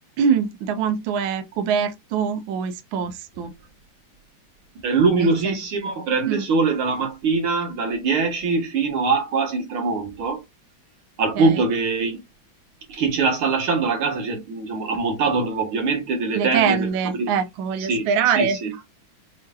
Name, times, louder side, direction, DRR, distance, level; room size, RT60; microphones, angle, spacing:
voice 1, 0.2-3.5 5.1-5.6 6.2-6.4 11.4-11.6 16.3-18.8, right 7 dB, 75° right, 1.4 m, -24 dB
voice 2, 4.8-10.4 11.2-12.2 12.9-16.9 17.2-17.3 17.9-18.1 18.4-18.7, right 4 dB, 90° right, 2.2 m, -22 dB
5.4 x 3.2 x 2.2 m
omnidirectional pair, 2.3 m